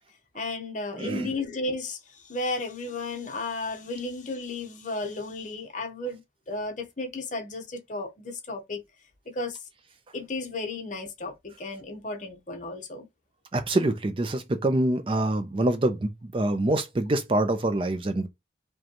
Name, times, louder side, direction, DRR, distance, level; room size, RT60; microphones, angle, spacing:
voice 1, 0.3-2.0 2.3-6.2 6.5-8.8 9.3-9.6 10.1-13.1, left 2 dB, 40° left, 0.8 m, -33 dB
voice 2, 0.9-1.3 13.5-18.3, right 1 dB, 30° right, 0.4 m, -25 dB
5.0 x 2.3 x 2.9 m
head